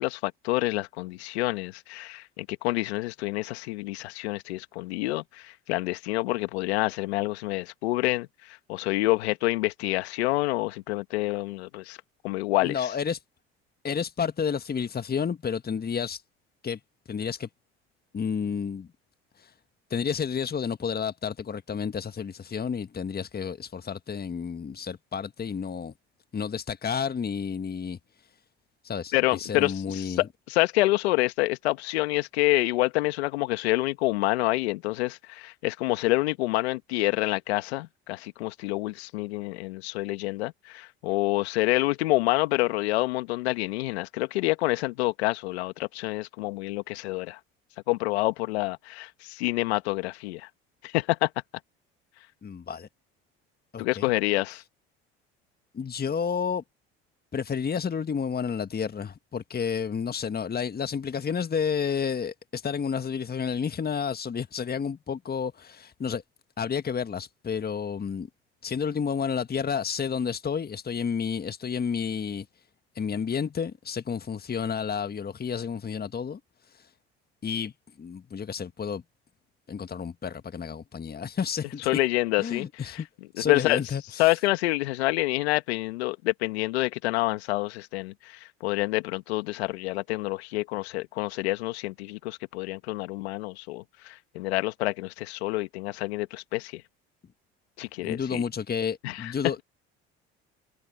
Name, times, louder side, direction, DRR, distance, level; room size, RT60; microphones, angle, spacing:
voice 1, 0.0-12.0 12.2-12.8 29.1-47.4 47.9-50.5 50.8-51.3 53.8-54.6 81.9-82.7 82.9-83.0 83.5-83.8 84.2-96.8 97.8-98.4 99.0-99.3, left 20 dB, 85° left, 1.9 m, -27 dB
voice 2, 12.6-13.2 13.8-16.2 16.6-16.8 17.1-17.5 18.1-18.9 19.4-19.5 19.9-25.9 26.3-28.0 28.8-30.3 52.4-52.9 53.7-54.1 55.7-56.6 57.3-66.2 66.6-68.3 68.6-72.5 72.9-76.4 77.4-77.7 78.0-79.0 79.7-81.9 82.4-83.1 83.3-84.2 98.0-99.6, left 6 dB, 30° left, 1.5 m, -30 dB
hypercardioid pair, 70°, 31 cm